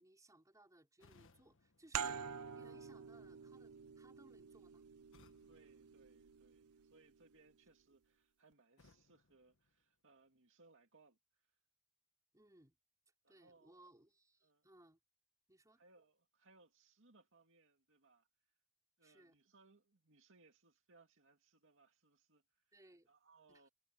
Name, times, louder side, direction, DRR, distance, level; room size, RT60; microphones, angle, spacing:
voice 1, 0.0-2.2 2.5-4.8 12.3-12.8 13.3-15.0 15.5-15.8 19.0-19.3 22.7-23.1 23.5-23.7, right 1 dB, 15° right, 4.5 m, -65 dB
sound 1, 1.0-3.0 5.1-6.8 8.8-10.4, left 3 dB, 60° left, 1.6 m, -71 dB
sound 2, 1.9-7.2, right 7 dB, 85° right, 0.6 m, -47 dB
voice 2, 5.5-11.5 13.2-13.9 14.4-14.7 15.7-18.3 19.0-23.7, right 3 dB, 60° right, 2.3 m, -69 dB
head